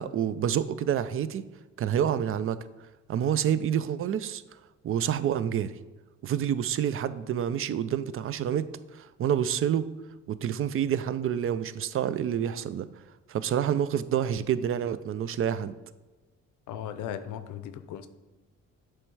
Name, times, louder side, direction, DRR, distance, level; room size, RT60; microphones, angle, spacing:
voice 1, 0.0-1.4 1.8-2.6 3.1-4.4 4.8-5.7 6.2-8.7 8.9-9.9 10.3-12.9 13.3-15.7, right 9 dB, 45° right, 15 dB, 0.4 m, -28 dB
voice 2, 16.7-18.1, left 10 dB, 80° left, 11 dB, 0.5 m, -37 dB
7.5 x 3.2 x 4.6 m, 1.2 s
cardioid pair, 90°, 30 cm